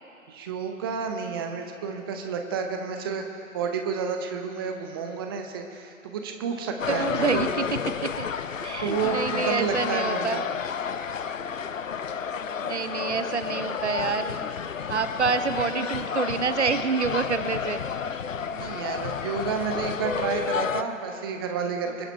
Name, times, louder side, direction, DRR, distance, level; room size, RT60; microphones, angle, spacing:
voice 1, 0.3-3.3 3.5-7.4 8.8-10.4 18.5-22.1, right 6 dB, 15° right, 4 dB, 0.8 m, -30 dB
sound 1, 6.8-20.8, left 7 dB, 65° left, 0.7 m, -31 dB
voice 2, 7.0-7.5 8.2-8.3 8.6-10.4 12.6-14.5 14.9-17.8, right 5 dB, 55° right, 11 dB, 0.8 m, -27 dB
25.0 x 10.0 x 4.2 m, 2.6 s
figure-of-eight pair, 135°, 41 cm